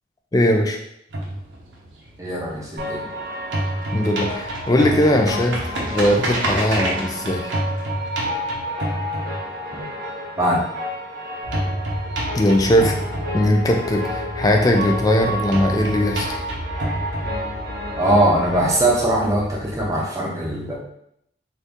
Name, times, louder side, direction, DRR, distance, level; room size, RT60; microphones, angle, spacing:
voice 1, 0.3-0.8 3.9-5.6 5.9-7.5 12.3-12.9 13.3-16.3, left 1 dB, 20° left, 2 dB, 0.3 m, -19 dB
sound 1, 1.1-3.1 3.4-9.9 11.5-13.9 15.5-17.9, right 1 dB, 90° right, 0.8 m, -27 dB
voice 2, 2.2-3.1 10.4-10.7 18.0-20.7, right 1 dB, 15° right, -3 dB, 0.7 m, -21 dB
sound 2, 2.8-18.8, equal, 55° right, 0.6 m, -31 dB
sound 3, 11.4-19.9, equal, 80° left, 1.0 m, -35 dB
2.7 x 2.6 x 3.4 m, 0.74 s
head